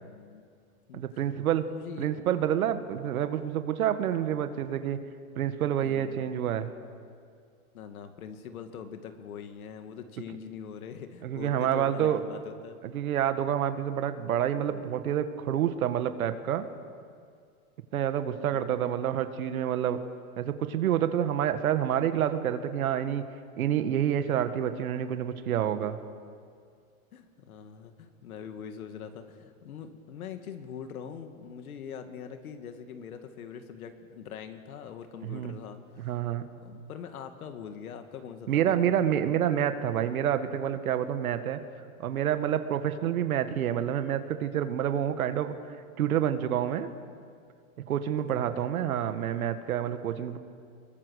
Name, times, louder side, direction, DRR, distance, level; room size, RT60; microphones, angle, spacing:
voice 1, 0.0-0.4 0.9-1.0 1.6-2.1 5.8-6.3 7.7-12.8 18.4-18.7 27.1-36.1 36.6-38.9 48.2-48.7, left 7 dB, 85° left, 7 dB, 2.2 m, -43 dB
voice 2, 0.9-1.7 2.0-5.0 5.4-6.7 11.2-12.2 12.8-16.7 17.9-20.0 20.4-23.3 23.6-26.0 35.2-35.5 36.0-36.5 38.5-41.6 42.0-45.6 46.0-46.9 47.9-50.4, right 10 dB, 80° right, 10 dB, 1.7 m, -28 dB
25.0 x 22.0 x 6.4 m, 2.2 s
supercardioid pair, 145°, 42 cm